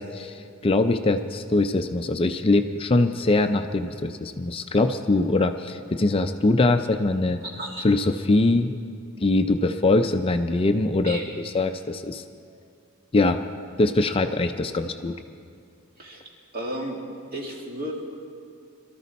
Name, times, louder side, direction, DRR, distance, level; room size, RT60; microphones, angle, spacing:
voice 1, 0.0-7.4 7.8-8.8 9.2-12.2 13.1-13.4 13.8-15.2, left 2 dB, 25° left, 8 dB, 0.4 m, -22 dB
voice 2, 7.4-7.9 11.0-11.2 16.0-17.0 17.3-18.1, right 1 dB, 45° right, -1 dB, 2.2 m, -33 dB
22.5 x 13.0 x 4.1 m, 2.3 s
head